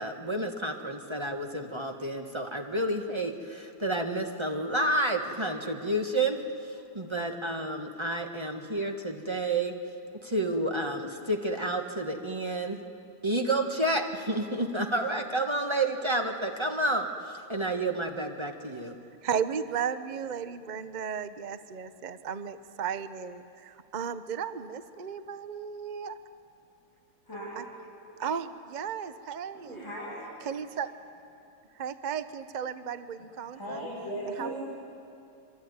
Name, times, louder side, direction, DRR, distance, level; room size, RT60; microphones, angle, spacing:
voice 1, 0.0-6.4 6.9-9.7 10.2-12.8 13.2-19.0, right 1 dB, 15° right, 4 dB, 1.3 m, -30 dB
voice 2, 19.2-26.2 27.6-27.7 28.2-29.8 30.4-30.9 31.7-33.9 34.3-34.6, right 7 dB, 70° right, 12 dB, 0.4 m, -35 dB
voice 3, 29.5-30.3 33.5-34.6, right 1 dB, 10° left, -10 dB, 8.0 m, -37 dB
25.0 x 24.0 x 9.5 m, 2.6 s
omnidirectional pair, 2.2 m